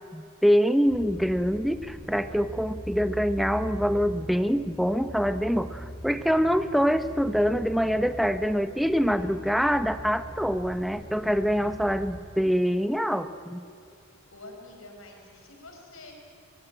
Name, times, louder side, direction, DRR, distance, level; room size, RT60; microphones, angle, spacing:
voice 1, 0.1-13.6, equal, ahead, 10 dB, 0.6 m, -25 dB
sound 1, 0.9-12.2, equal, 25° left, 2.9 m, -41 dB
voice 2, 14.3-16.1, left 2 dB, 75° left, 2 dB, 4.9 m, -47 dB
24.5 x 22.5 x 8.9 m, 2.6 s
head